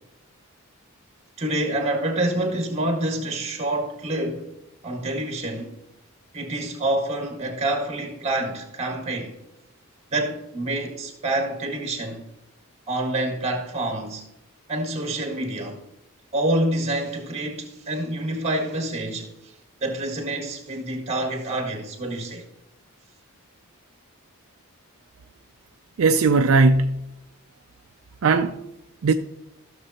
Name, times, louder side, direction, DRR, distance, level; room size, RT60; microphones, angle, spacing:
voice 1, 1.4-4.5 4.8-5.7 6.3-9.3 10.1-12.2 12.9-14.2 14.7-15.8 16.3-19.3 19.8-22.4, right 1 dB, 30° right, 1.6 m, -27 dB
voice 2, 26.0-27.0 28.2-28.6 29.0-29.1, right 3 dB, 70° right, 0.4 m, -18 dB
14.5 x 6.7 x 2.9 m
head